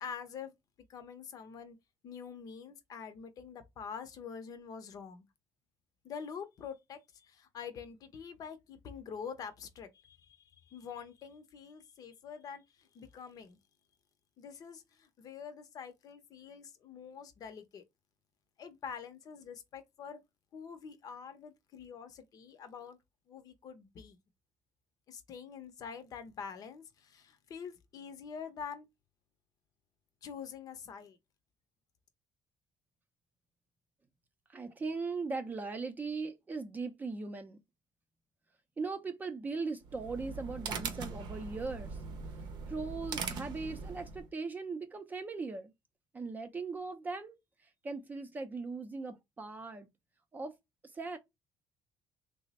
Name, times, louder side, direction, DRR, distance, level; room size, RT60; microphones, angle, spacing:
voice 1, 0.0-0.5 0.9-1.8 2.0-5.3 6.0-13.6 14.4-17.8 18.6-20.2 20.5-23.0 23.3-24.2 25.1-28.9 30.2-31.2, left 6 dB, 50° left, 0.6 m, -46 dB
voice 2, 34.5-37.6 38.8-42.0 42.7-45.7 46.1-47.4 47.8-49.9 50.3-50.5 50.9-51.2, right 4 dB, 20° right, 0.5 m, -39 dB
sound 1, 39.8-44.3, right 5 dB, 65° right, 0.7 m, -41 dB
3.1 x 2.0 x 4.0 m
cardioid pair, 130°, 8 cm